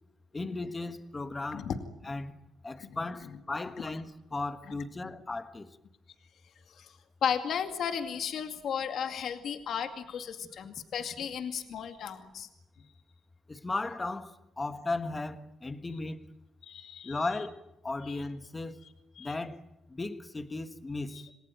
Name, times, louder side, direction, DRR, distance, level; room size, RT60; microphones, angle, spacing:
voice 1, 0.3-1.7 2.0-2.3 2.6-5.7 13.5-16.3 17.0-18.8 19.2-19.6 19.9-21.2, left 2 dB, 20° left, 1.5 m, -36 dB
voice 2, 7.2-12.5 16.6-17.3 18.1-18.2 19.2-19.3 21.1-21.2, left 8 dB, 65° left, 2.3 m, -34 dB
28.0 x 20.5 x 9.3 m
cardioid pair, 135°, 0 cm